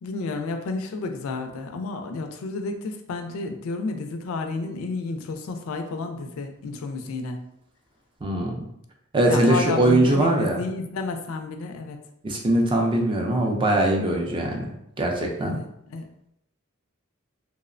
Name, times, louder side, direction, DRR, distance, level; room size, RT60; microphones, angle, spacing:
voice 1, 0.0-7.4 9.3-12.0 15.4-16.1, left 3 dB, 65° left, 6 dB, 0.3 m, -31 dB
voice 2, 8.2-8.6 9.1-10.6 12.2-15.6, right 1 dB, 20° right, 1 dB, 0.3 m, -22 dB
2.7 x 2.0 x 2.4 m, 0.78 s
head